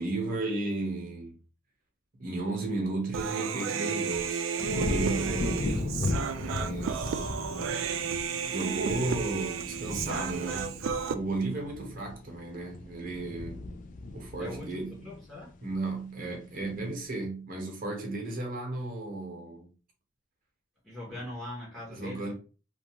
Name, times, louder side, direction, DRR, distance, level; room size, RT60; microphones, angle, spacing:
voice 1, 0.0-1.3 2.2-4.4 4.7-7.3 8.4-10.8 11.1-13.6 14.1-15.0 15.6-19.7 21.9-22.3, right 2 dB, 45° right, 0.9 m, -34 dB
Human voice, 3.1-11.1, right 6 dB, 85° right, 0.3 m, -32 dB
sound 1, 4.6-15.9 16.3-16.8, left 2 dB, 45° left, 0.3 m, -36 dB
voice 2, 5.2-5.9 6.2-6.4 14.4-15.6 20.8-22.3, left 1 dB, ahead, 0.9 m, -42 dB
2.4 x 2.3 x 2.9 m
head